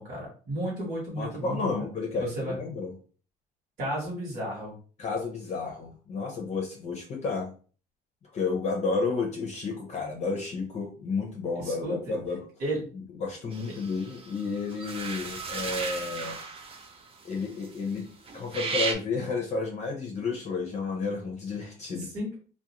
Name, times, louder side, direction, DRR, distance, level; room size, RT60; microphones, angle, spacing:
voice 1, 0.0-1.8 2.2-2.6 3.8-4.8 11.6-12.2 12.6-12.8 22.0-22.3, right 1 dB, 55° right, -5 dB, 1.2 m, -33 dB
voice 2, 1.2-2.9 5.0-7.5 8.3-12.5 13.2-16.4 17.2-18.1 18.3-22.1, left 4 dB, 40° left, 1 dB, 0.6 m, -31 dB
sound 1, 13.5-18.0 18.3-18.9, right 4 dB, 35° right, 0.5 m, -35 dB
2.4 x 2.2 x 2.8 m, 0.40 s
cardioid pair, 110°, 17 cm